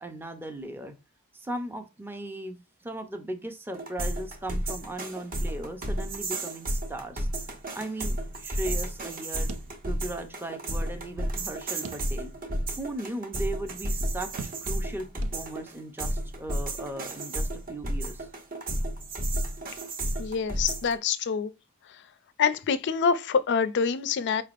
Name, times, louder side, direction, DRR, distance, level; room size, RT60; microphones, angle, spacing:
voice 1, 0.0-0.9 1.3-7.3 7.7-9.5 9.9-12.3 12.8-15.1 15.3-18.3, right 1 dB, 10° right, 0.5 m, -37 dB
sound 1, 3.7-20.9, right 1 dB, 40° right, 0.8 m, -32 dB
sound 2, 9.5-10.4 10.7-10.8 11.8-12.5 13.0-13.1 14.4-14.9 15.2-15.9, right 4 dB, 70° right, 0.5 m, -43 dB
voice 2, 20.2-21.5 22.4-24.4, left 6 dB, 55° left, 0.4 m, -26 dB
4.9 x 3.3 x 2.4 m
head